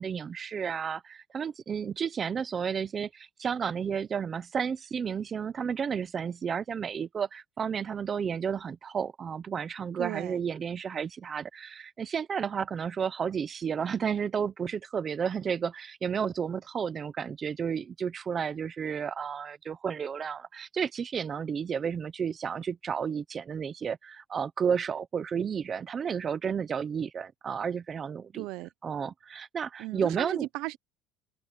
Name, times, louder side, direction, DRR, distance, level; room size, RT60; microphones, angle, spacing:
voice 1, 0.0-28.5 28.8-30.5, right 7 dB, 20° right, 0.8 m, -32 dB
voice 2, 10.0-10.4 28.3-28.7 29.8-30.8, right 20 dB, 60° right, 0.7 m, -35 dB
open air
cardioid pair, 180°, 0 cm